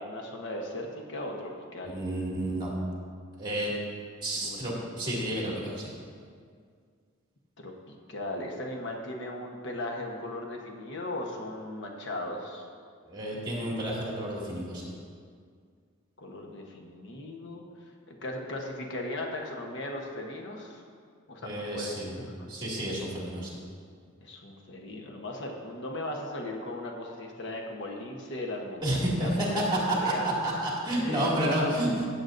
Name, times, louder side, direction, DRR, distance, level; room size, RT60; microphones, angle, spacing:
voice 1, 0.0-2.0 4.3-4.7 7.6-12.7 16.2-17.6 18.1-20.8 21.3-22.5 24.2-30.3 31.0-31.7, left 1 dB, 60° left, 0 dB, 1.1 m, -37 dB
voice 2, 1.9-2.7 3.4-3.7 4.2-5.9 13.1-14.8 21.4-22.2 22.5-23.6 28.8-31.9, right 1 dB, 20° right, -4 dB, 2.3 m, -30 dB
15.5 x 8.1 x 2.6 m, 2.1 s
head